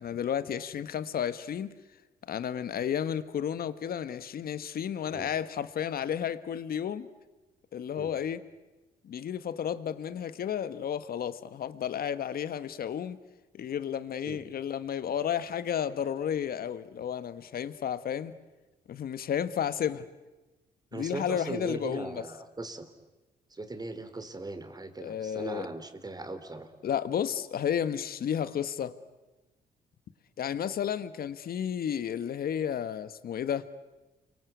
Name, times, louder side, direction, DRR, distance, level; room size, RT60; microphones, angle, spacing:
voice 1, 0.0-1.7 2.3-7.1 7.7-8.5 9.0-13.2 13.5-18.3 18.9-20.1 20.9-22.2 25.0-25.7 26.8-29.0 30.4-33.7, left 9 dB, 65° left, 13 dB, 1.6 m, -32 dB
voice 2, 20.9-22.9 23.5-26.7, right 2 dB, 25° right, 9 dB, 3.7 m, -39 dB
29.5 x 23.5 x 8.4 m, 1.1 s
cardioid pair, 75°, 17 cm